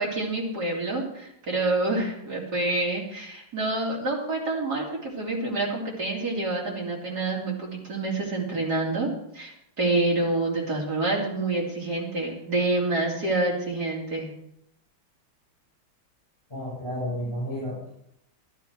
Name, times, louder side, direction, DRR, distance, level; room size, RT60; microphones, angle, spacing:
voice 1, 0.0-9.1 9.3-14.3, right 2 dB, 50° right, -3 dB, 3.7 m, -27 dB
voice 2, 16.5-17.9, equal, 10° left, -7 dB, 5.9 m, -31 dB
12.0 x 11.5 x 4.7 m, 0.77 s
omnidirectional pair, 2.3 m